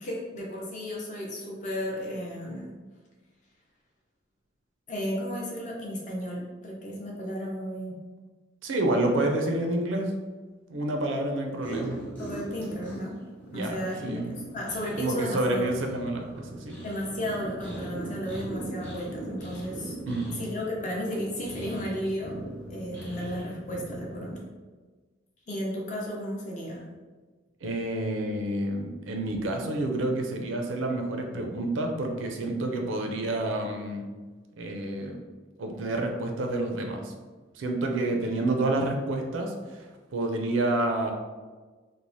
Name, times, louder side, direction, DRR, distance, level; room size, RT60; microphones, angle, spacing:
voice 1, 0.0-2.7 4.9-8.0 12.2-13.1 13.5-14.2 14.5-15.7 16.8-19.9 20.4-22.3 22.7-24.5 25.5-26.9, equal, 40° left, -3 dB, 0.6 m, -34 dB
voice 2, 8.6-10.1 10.7-12.0 13.5-14.3 15.0-16.8 20.1-20.4 27.6-34.1 34.6-35.2 35.6-37.1 37.6-39.9 40.1-41.1, right 2 dB, 85° right, 3 dB, 0.4 m, -29 dB
sound 1, 11.6-24.3, right 1 dB, 10° left, 0.8 m, -40 dB
3.2 x 2.1 x 2.6 m, 1.3 s
head